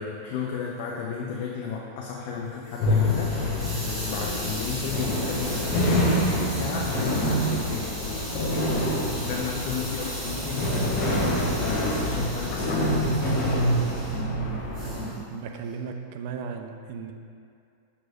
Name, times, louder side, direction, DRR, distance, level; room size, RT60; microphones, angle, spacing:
voice 1, 0.0-8.7 9.0-11.0 11.4-13.2, left 6 dB, 50° left, -2 dB, 0.4 m, -33 dB
Hiss, 2.4-14.2 14.7-15.1, right 1 dB, 30° right, 1.0 m, -38 dB
sound 1, 2.8-15.1, equal, 35° left, 0.9 m, -26 dB
voice 2, 14.8-17.1, right 6 dB, 50° right, 5 dB, 0.3 m, -36 dB
5.9 x 3.0 x 2.6 m, 2.3 s
figure-of-eight pair, 90°, 0 cm